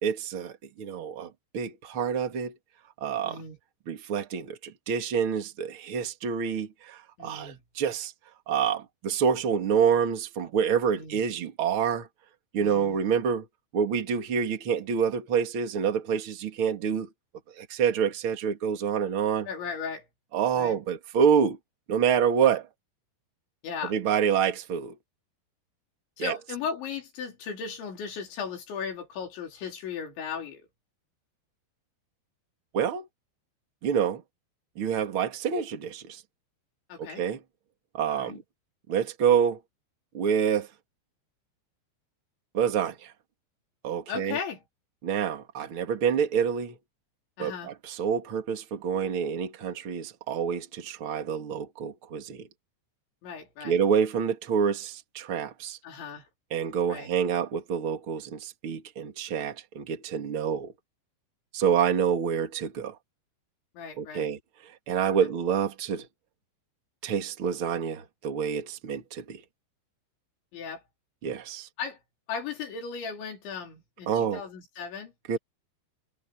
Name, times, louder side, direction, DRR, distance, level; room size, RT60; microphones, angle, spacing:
voice 1, 0.0-2.5 3.0-3.4 3.9-8.1 8.5-12.1 12.5-13.4 13.7-17.1 17.6-19.5 20.3-21.6 21.9-22.7 23.9-24.9 26.2-26.3 32.7-33.1 33.8-34.2 34.8-36.2 37.0-37.4 37.9-38.4 38.9-39.6 40.1-40.7 42.5-42.9 43.8-44.4 45.0-46.7 47.4-52.4 53.6-55.8 56.5-60.7 61.5-62.9 64.0-64.4 64.9-66.0 67.0-69.4 71.2-71.7 74.1-74.4 75.3-75.4, right 7 dB, 35° right, 2.5 m, -27 dB
voice 2, 3.2-3.6 7.2-7.6 11.0-11.2 12.6-13.0 19.5-20.1 20.5-20.8 23.6-24.0 26.2-30.7 36.9-37.2 38.1-38.4 44.1-44.6 47.4-47.7 53.2-53.8 55.8-56.3 56.9-57.1 63.7-64.3 65.2-65.3 70.5-70.8 71.8-72.0 72.3-75.1, left 6 dB, 80° left, 6.4 m, -36 dB
omnidirectional pair, 5.2 m